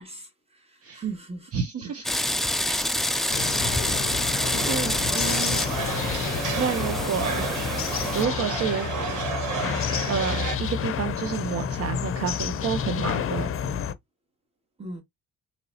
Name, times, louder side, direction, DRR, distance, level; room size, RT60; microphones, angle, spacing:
voice 1, 0.0-2.3 14.8-15.0, right 5 dB, 20° right, 1.9 m, -39 dB
voice 2, 1.5-2.2 2.6-2.9 4.5-5.6 6.6-7.5 8.1-9.2 10.1-13.5, right 6 dB, 50° right, 0.8 m, -30 dB
sound 1, 2.0-8.2, left 1 dB, ahead, 0.4 m, -27 dB
sound 2, 3.3-13.9, left 7 dB, 45° left, 0.6 m, -30 dB
sound 3, 4.4-10.6, right 6 dB, 75° right, 1.5 m, -32 dB
4.0 x 3.1 x 2.7 m
cardioid pair, 90°, 30 cm